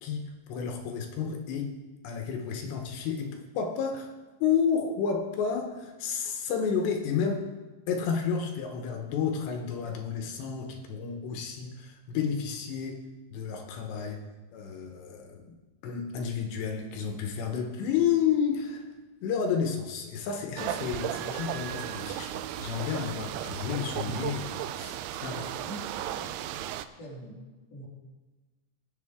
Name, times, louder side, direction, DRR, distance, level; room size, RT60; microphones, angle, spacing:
voice 1, 0.0-1.7 2.0-4.1 4.4-7.5 7.9-13.0 13.3-14.2 14.5-15.5 15.8-18.9 19.2-25.0 25.2-25.6, left 7 dB, 80° left, 3 dB, 3.2 m, -31 dB
sound 1, 20.6-26.9, right 11 dB, 85° right, 2.2 m, -35 dB
voice 2, 25.6-26.4 27.0-27.4 27.7-27.9, right 1 dB, 30° left, -4 dB, 2.5 m, -44 dB
21.0 x 7.3 x 3.6 m, 1.2 s
omnidirectional pair, 5.1 m